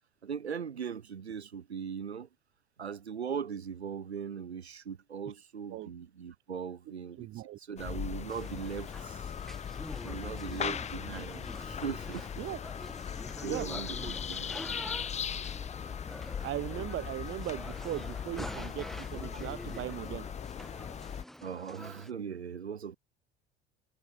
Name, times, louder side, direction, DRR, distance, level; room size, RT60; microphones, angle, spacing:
voice 1, 0.2-2.3 2.8-7.3 7.6-9.3 10.0-12.4 13.1-13.2 13.4-14.7 21.4-23.0, right 7 dB, 80° right, 1.1 m, -39 dB
voice 2, 7.1-7.6 12.4-12.6 13.5-13.7 16.4-20.3, right 15 dB, 40° right, 0.9 m, -38 dB
sound 1, 7.8-21.2, left 8 dB, 20° left, 0.7 m, -39 dB
sound 2, 8.3-22.1, equal, ahead, 1.5 m, -46 dB
figure-of-eight pair, 60°, 32 cm